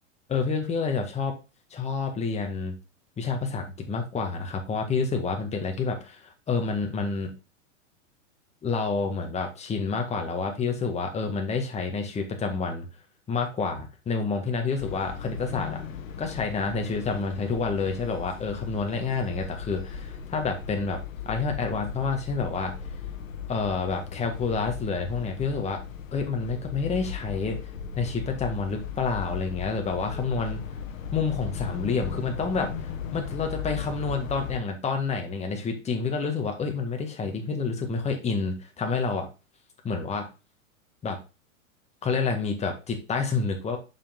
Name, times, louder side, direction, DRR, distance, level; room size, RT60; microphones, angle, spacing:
voice 1, 0.3-1.3 1.7-2.7 3.2-7.3 8.6-12.9 13.3-15.8 16.2-21.0 21.3-22.7 23.5-25.8 26.1-27.6 28.0-30.6 31.1-39.3 39.8-40.2 41.0-41.2 42.0-43.8, left 4 dB, 15° left, 3 dB, 1.7 m, -28 dB
sound 1, 14.8-34.6, left 7 dB, 75° left, 1.4 m, -37 dB
6.6 x 5.8 x 3.7 m, 0.30 s
hypercardioid pair, 130°, 39 cm